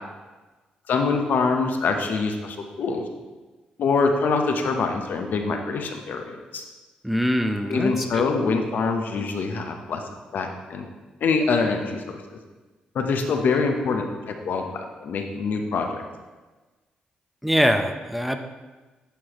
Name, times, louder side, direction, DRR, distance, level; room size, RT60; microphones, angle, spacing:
voice 1, 0.9-3.0 3.8-6.6 7.7-10.0 10.3-10.8 11.2-12.2 12.9-16.0, left 4 dB, 65° left, 4 dB, 0.8 m, -24 dB
voice 2, 7.0-8.3 17.4-18.4, equal, 5° right, 6 dB, 0.6 m, -23 dB
10.0 x 4.7 x 3.0 m, 1.2 s
supercardioid pair, 50°, 3 cm